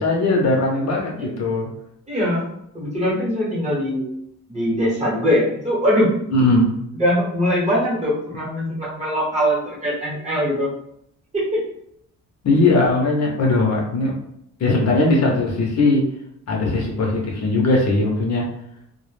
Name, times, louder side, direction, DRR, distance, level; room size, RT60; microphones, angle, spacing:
voice 1, 0.0-1.7 6.3-6.8 12.4-14.1 14.6-16.1 16.5-18.5, left 2 dB, 55° left, -1 dB, 0.5 m, -19 dB
voice 2, 2.1-2.4 2.7-4.1 4.5-6.1 6.9-10.7 11.3-11.6, equal, 20° right, -6 dB, 0.8 m, -21 dB
2.1 x 2.0 x 3.0 m, 0.74 s
wide cardioid pair, 160°, 33 cm